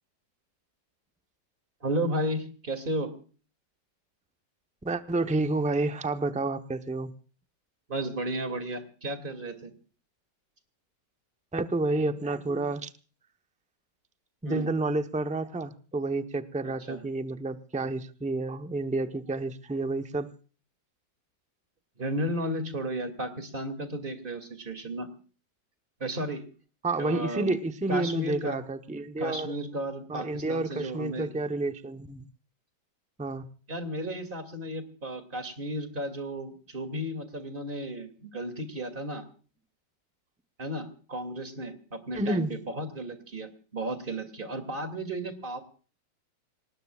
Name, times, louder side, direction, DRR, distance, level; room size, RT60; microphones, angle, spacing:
voice 1, 1.8-3.1 7.9-9.7 14.4-14.7 16.6-17.0 22.0-25.1 26.0-26.4 27.0-27.6 27.9-28.6 29.2-31.3 33.7-39.2 40.6-45.6, right 1 dB, 30° right, 8 dB, 2.7 m, -34 dB
voice 2, 4.8-7.1 11.5-12.9 14.4-20.3 26.8-29.5 30.1-32.3 33.2-33.5 42.1-42.5, right 2 dB, 10° right, 8 dB, 0.5 m, -30 dB
26.5 x 19.5 x 2.4 m, 0.39 s
omnidirectional pair, 1.9 m